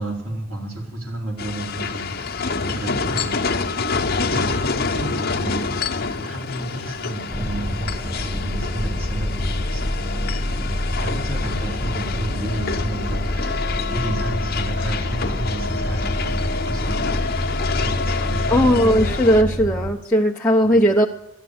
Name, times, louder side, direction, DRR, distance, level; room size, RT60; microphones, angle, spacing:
voice 1, 0.0-3.9 4.2-5.6 6.1-19.3 20.7-20.9, right 1 dB, 90° right, 3.7 m, -32 dB
sound 1, 1.4-19.4, left 4 dB, 45° left, 0.9 m, -27 dB
sound 2, 7.3-19.9, left 1 dB, 35° right, 2.6 m, -26 dB
voice 2, 18.5-21.1, equal, 10° left, 0.7 m, -17 dB
12.5 x 10.0 x 7.8 m
head